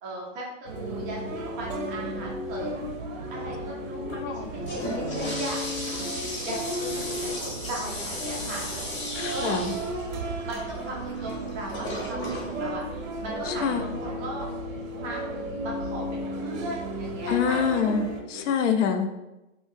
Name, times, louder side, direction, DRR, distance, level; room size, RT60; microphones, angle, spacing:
voice 1, 0.0-2.8 3.3-5.6 6.4-8.6 9.3-9.6 10.4-12.8 13.2-14.5 15.0-15.2 15.6-17.6 18.3-18.4, right 1 dB, 15° right, -3 dB, 0.3 m, -37 dB
sound 1, 0.7-18.2, right 1 dB, 90° right, 0.8 m, -34 dB
voice 2, 4.1-4.5 9.2-9.7 13.5-13.8 17.3-19.1, left 7 dB, 65° left, 6 dB, 0.5 m, -26 dB
Toilet flush, 4.4-13.8, left 1 dB, 20° left, 0.8 m, -36 dB
2.7 x 2.7 x 3.4 m, 0.96 s
hypercardioid pair, 140°, 39 cm